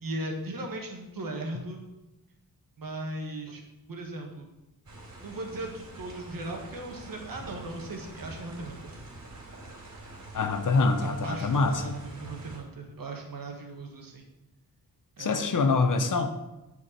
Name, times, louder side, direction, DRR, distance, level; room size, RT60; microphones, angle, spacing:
voice 1, 0.0-1.8 2.8-3.6 3.9-4.5 5.2-9.0 10.8-14.3 15.2-15.5, right 2 dB, 65° right, 2 dB, 1.7 m, -38 dB
sound 1, 4.9-12.6, right 2 dB, 50° right, 3.4 m, -46 dB
voice 2, 10.3-11.9 15.2-16.3, left 3 dB, 60° left, 7 dB, 0.8 m, -25 dB
9.7 x 4.7 x 5.8 m, 1.0 s
wide cardioid pair, 170°, 36 cm